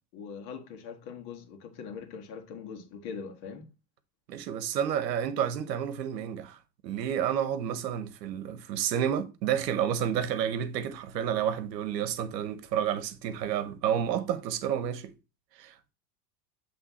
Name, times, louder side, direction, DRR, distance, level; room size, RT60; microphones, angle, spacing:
voice 1, 0.1-3.7, left 6 dB, 50° left, 1.7 m, -42 dB
voice 2, 4.3-6.6 6.8-15.1 15.6-15.9, right 9 dB, 75° right, 1.0 m, -30 dB
8.1 x 3.4 x 4.1 m
hypercardioid pair, 90°, 50 cm